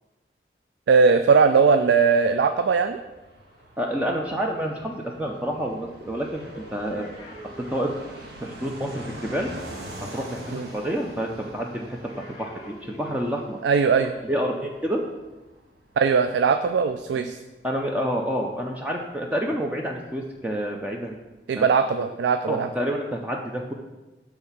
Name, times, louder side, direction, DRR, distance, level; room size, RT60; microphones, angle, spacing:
voice 1, 0.9-3.0 10.5-10.7 13.6-14.1 16.0-17.4 21.5-22.7, right 5 dB, 85° right, 9 dB, 0.3 m, -19 dB
Fixed-wing aircraft airplane, 2.4-20.1 20.4-20.5 20.7-21.4, right 1 dB, 70° right, 1.4 m, -44 dB
voice 2, 3.8-7.1 7.7-7.9 8.4-9.5 10.0-12.0 12.4-13.6 14.2-15.0 17.6-21.2 21.6-21.7 22.5-23.7, equal, 10° right, 0 dB, 0.4 m, -28 dB
sound 1, 5.8-8.6 11.7-13.7 14.5-14.7, left 1 dB, 30° left, 0.9 m, -45 dB
7.6 x 3.5 x 5.6 m, 1.1 s
head